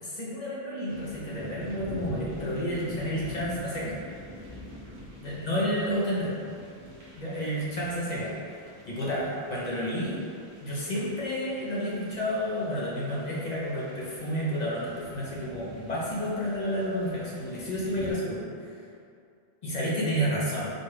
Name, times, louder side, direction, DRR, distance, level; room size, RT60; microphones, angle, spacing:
voice 1, 0.0-4.0 5.2-6.3 7.2-8.3 8.9-10.2 10.6-18.4 19.6-20.7, equal, 50° left, -6 dB, 0.6 m, -30 dB
sound 1, 0.8-18.1, equal, 50° right, 1.0 m, -46 dB
4.2 x 2.3 x 3.2 m, 2.4 s
omnidirectional pair, 1.2 m